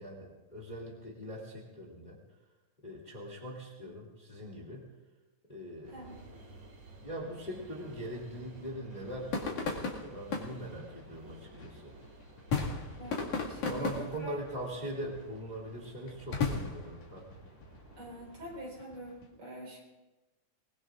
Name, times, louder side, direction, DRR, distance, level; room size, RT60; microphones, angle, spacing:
voice 1, 0.0-2.2 2.8-4.8 5.5-6.0 7.0-11.9 12.6-12.9 13.7-17.2, equal, 15° left, -3 dB, 2.6 m, -42 dB
sound 1, 5.8-18.7, right 2 dB, 65° right, 3.7 m, -53 dB
sound 2, 8.9-19.3, left 4 dB, 80° left, 3.5 m, -38 dB
voice 2, 13.0-14.3 18.0-19.8, right 1 dB, 45° right, -3 dB, 5.4 m, -45 dB
26.5 x 20.0 x 2.5 m, 1.1 s
omnidirectional pair, 3.3 m